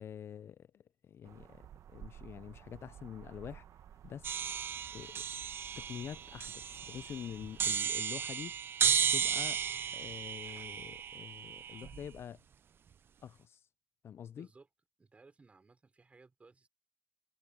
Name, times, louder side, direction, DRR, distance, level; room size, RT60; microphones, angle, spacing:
voice 1, 0.0-3.7 4.0-4.4 4.9-5.3 5.6-8.6 9.1-9.6 9.9-12.4 13.2-13.7 14.0-14.5, left 9 dB, 45° left, 0.4 m, -46 dB
sound 1, 1.2-7.8, right 10 dB, 65° right, 1.3 m, -55 dB
sound 2, 4.2-12.2, right 8 dB, 40° right, 0.4 m, -34 dB
voice 2, 15.0-16.7, right 4 dB, 20° right, 4.7 m, -60 dB
cardioid pair, 130°, 6 cm